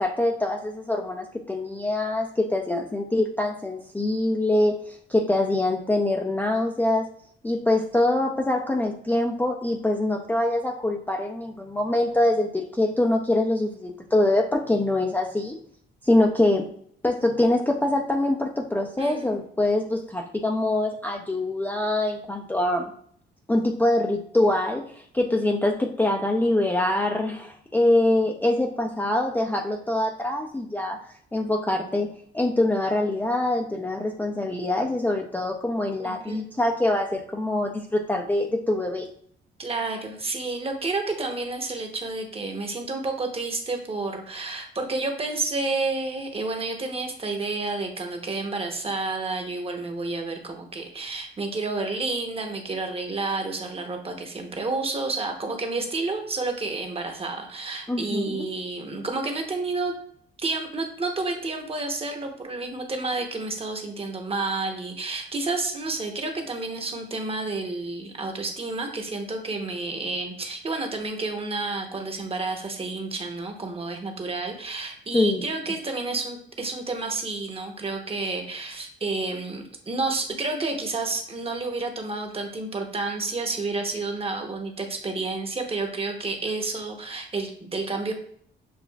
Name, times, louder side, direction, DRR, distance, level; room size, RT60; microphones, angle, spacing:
voice 1, 0.0-7.1 7.4-15.6 16.0-16.7 17.0-22.9 23.5-31.0 31.3-32.1 32.3-39.1 57.9-58.4 75.1-75.4, left 1 dB, 10° left, 0 dB, 0.5 m, -24 dB
voice 2, 19.0-19.3 36.0-36.4 39.6-59.9 60.4-88.1, right 3 dB, 30° right, 3 dB, 0.9 m, -30 dB
7.1 x 2.4 x 2.3 m, 0.62 s
cardioid pair, 90°, 20 cm